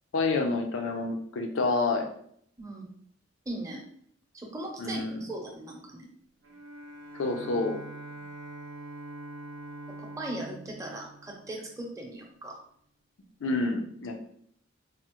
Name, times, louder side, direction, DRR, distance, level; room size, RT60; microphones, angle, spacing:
voice 1, 0.1-2.1 4.8-5.3 7.2-7.8 13.4-14.2, left 3 dB, 85° left, 4 dB, 0.5 m, -28 dB
voice 2, 3.5-3.8 4.3-6.1 10.0-12.6, right 1 dB, 15° right, 0 dB, 0.6 m, -39 dB
Bowed string instrument, 6.4-12.0, right 2 dB, 85° right, 0.4 m, -44 dB
3.5 x 2.0 x 2.9 m, 0.65 s
head